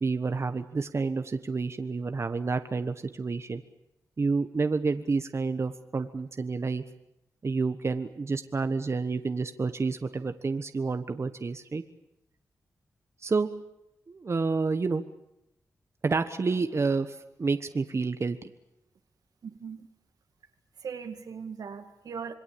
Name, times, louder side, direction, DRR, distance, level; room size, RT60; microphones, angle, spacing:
voice 1, 0.0-3.6 4.2-6.8 7.4-11.8 13.2-13.5 14.1-15.0 16.0-17.1 17.4-18.4, right 4 dB, 45° right, 9 dB, 1.3 m, -29 dB
voice 2, 19.4-19.9 20.8-22.3, right 6 dB, 90° right, 6 dB, 2.2 m, -39 dB
26.5 x 22.0 x 8.6 m, 0.83 s
cardioid pair, 75°, 6 cm